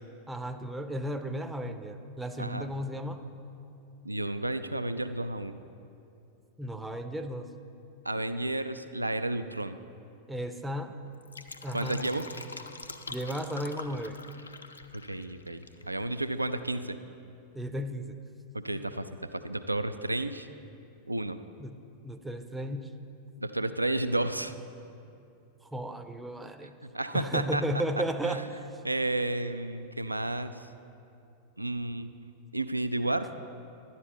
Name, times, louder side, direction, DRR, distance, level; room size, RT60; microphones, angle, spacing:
voice 1, 0.3-3.3 6.6-7.5 10.3-11.0 11.6-12.1 13.1-14.2 17.5-18.2 21.6-21.8 22.0-22.9 25.6-26.7 27.1-28.6, equal, 5° right, 7 dB, 0.5 m, -34 dB
voice 2, 4.0-5.6 8.1-9.8 11.7-12.3 15.1-17.0 18.6-20.5 21.1-21.4 23.4-24.5 26.8-27.6 28.2-28.4 28.8-30.6 31.6-32.1 32.5-33.3, right 2 dB, 85° right, 11 dB, 0.3 m, -31 dB
Fill (with liquid), 11.1-15.9 16.1-16.2, left 3 dB, 80° left, 0.4 m, -44 dB
11.0 x 9.6 x 4.4 m, 2.7 s
figure-of-eight pair, 90°, 0 cm